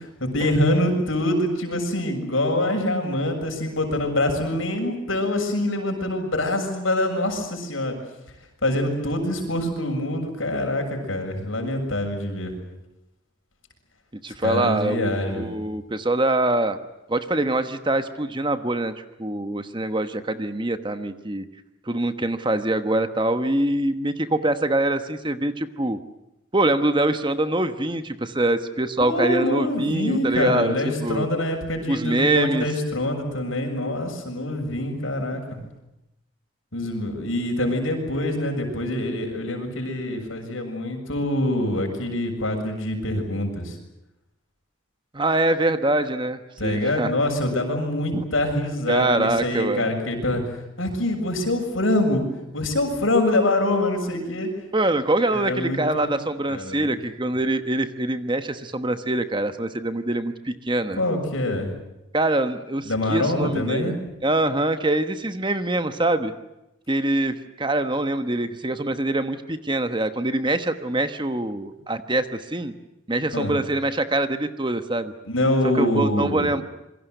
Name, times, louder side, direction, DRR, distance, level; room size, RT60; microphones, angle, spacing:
voice 1, 0.2-8.0 8.6-12.5 14.4-15.5 29.0-35.6 36.7-43.7 46.6-50.4 50.8-52.2 52.5-54.5 55.3-56.1 56.5-57.0 61.0-61.7 62.8-64.0 73.3-73.5 75.2-76.5, left 1 dB, 75° left, 3 dB, 7.2 m, -25 dB
voice 2, 14.2-16.8 17.1-21.4 21.9-26.0 26.5-30.7 31.0-31.3 31.9-32.7 45.1-47.1 48.1-48.2 48.9-49.9 54.7-61.0 62.1-63.9 64.2-66.3 66.9-72.7 73.1-75.1 75.7-76.6, right 2 dB, 25° right, 9 dB, 1.2 m, -24 dB
27.5 x 23.5 x 8.0 m, 0.90 s
head